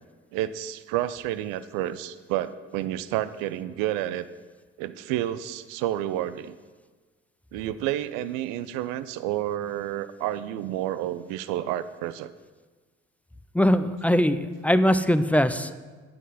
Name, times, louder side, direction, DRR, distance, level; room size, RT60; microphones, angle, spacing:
voice 1, 0.3-4.3 4.8-6.5 7.5-12.3, right 13 dB, 75° right, 14 dB, 0.5 m, -30 dB
voice 2, 13.5-15.7, equal, 5° left, 12 dB, 0.5 m, -21 dB
9.6 x 9.2 x 4.1 m, 1.4 s
hypercardioid pair, 45°, 33 cm